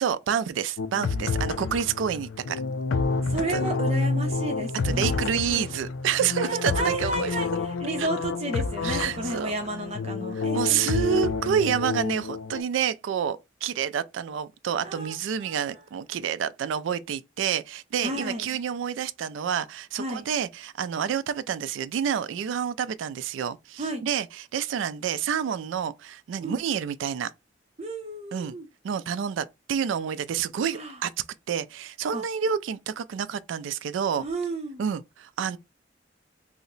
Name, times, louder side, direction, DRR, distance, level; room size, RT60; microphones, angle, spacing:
voice 1, 0.0-2.6 3.5-3.6 4.8-7.4 8.0-8.1 8.8-9.5 10.5-27.3 28.3-28.6 28.8-31.1 31.5-34.3 34.8-35.6, right 8 dB, 80° right, 0.3 m, -28 dB
sound 1, 0.8-12.6, left 4 dB, 85° left, 0.4 m, -29 dB
voice 2, 3.3-5.7 6.4-11.3 14.8-15.2 15.4-15.8 18.0-18.6 20.0-20.3 23.8-24.1 26.4-26.6 27.8-28.7 30.7-31.0 32.1-32.2 34.2-34.8, right 2 dB, 35° right, 0.6 m, -32 dB
2.7 x 2.1 x 3.9 m
head